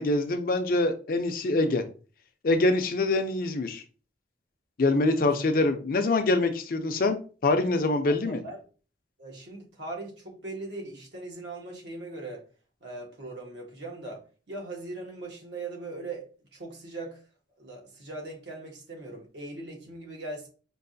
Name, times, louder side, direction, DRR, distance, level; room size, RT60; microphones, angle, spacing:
voice 1, 0.0-1.8 2.4-3.8 4.8-8.4, left 2 dB, 55° left, 0.5 m, -25 dB
voice 2, 5.2-5.5 8.0-8.6 9.2-12.4 12.8-17.2 17.6-20.5, right 2 dB, 85° right, 1.3 m, -40 dB
4.6 x 2.4 x 2.6 m
head